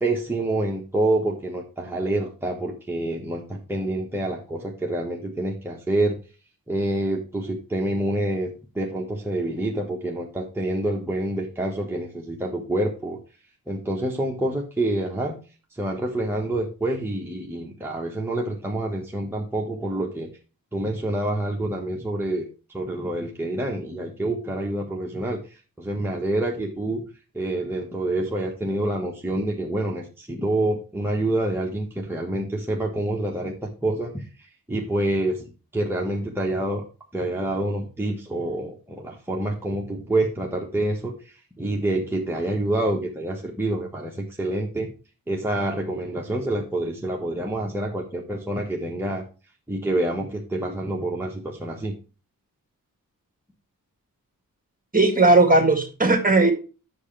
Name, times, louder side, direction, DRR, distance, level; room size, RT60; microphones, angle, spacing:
voice 1, 0.0-6.2 6.7-8.5 8.7-13.2 13.7-15.3 15.7-20.3 20.7-22.5 22.7-25.4 25.8-27.0 27.3-35.5 35.7-36.9 37.1-41.1 41.6-44.9 45.3-49.2 49.7-51.9, right 1 dB, 5° right, -2 dB, 1.5 m, -27 dB
voice 2, 54.9-56.5, right 2 dB, 25° right, 5 dB, 2.0 m, -17 dB
8.4 x 6.6 x 3.4 m, 0.34 s
wide cardioid pair, 80°, 33 cm